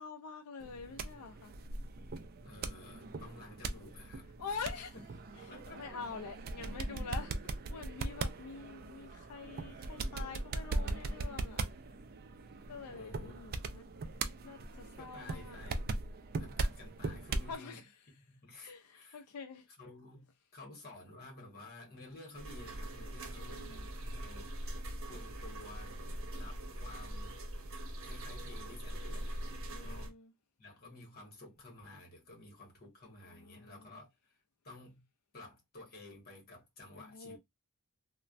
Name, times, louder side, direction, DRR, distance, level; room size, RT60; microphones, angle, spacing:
voice 1, 0.0-1.5 4.4-4.9 5.4-7.3 7.7-11.7 12.7-13.8 14.4-15.8 17.5-17.9 18.6-19.7 23.4-23.9 29.7-30.3 33.3-33.9 36.9-37.4, left 5 dB, 85° left, 0.4 m, -46 dB
sound 1, 0.6-17.6, right 3 dB, 45° right, 0.4 m, -40 dB
voice 2, 2.4-4.6 4.9-6.0 12.9-13.8 15.0-15.9 16.4-17.8 18.3-19.2 19.8-26.0 26.3-27.4 28.0-29.5 29.8-30.1 30.6-34.4 34.6-35.0 35.3-37.4, left 2 dB, 45° left, 1.3 m, -53 dB
sound 2, 22.3-30.1, right 1 dB, 60° right, 0.7 m, -42 dB
3.1 x 2.1 x 2.4 m
head